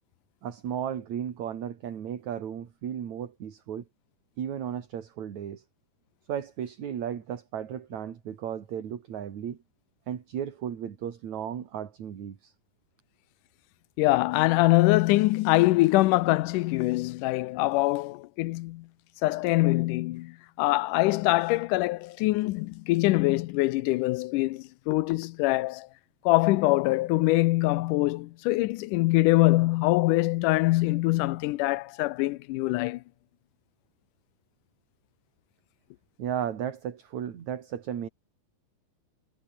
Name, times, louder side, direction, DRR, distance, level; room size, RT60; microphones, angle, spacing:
voice 1, 0.4-3.8 4.4-5.6 6.3-9.6 10.1-12.5 36.2-38.1, right 9 dB, 65° right, 3.4 m, -35 dB
voice 2, 14.0-18.9 19.2-25.9 26.3-33.0, left 19 dB, 85° left, 2.2 m, -24 dB
omnidirectional pair, 3.6 m